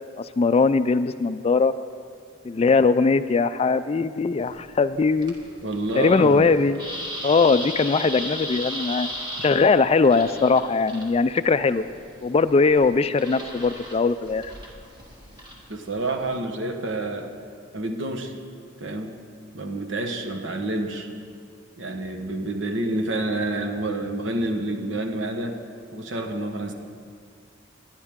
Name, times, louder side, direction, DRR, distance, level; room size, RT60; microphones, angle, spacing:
voice 1, 0.2-1.7 2.4-5.4 6.0-6.8 7.2-9.1 9.4-11.9 12.2-14.5, left 4 dB, 30° left, 12 dB, 0.3 m, -20 dB
sound 1, 4.4-16.4, equal, 20° right, 1.9 m, -37 dB
voice 2, 5.6-6.5 9.4-9.5 15.7-17.3 17.7-18.3 18.8-19.1 19.5-21.1 21.8-25.6 25.9-26.7, right 2 dB, 70° right, 4 dB, 1.2 m, -28 dB
22.0 x 10.5 x 3.6 m, 2.2 s
head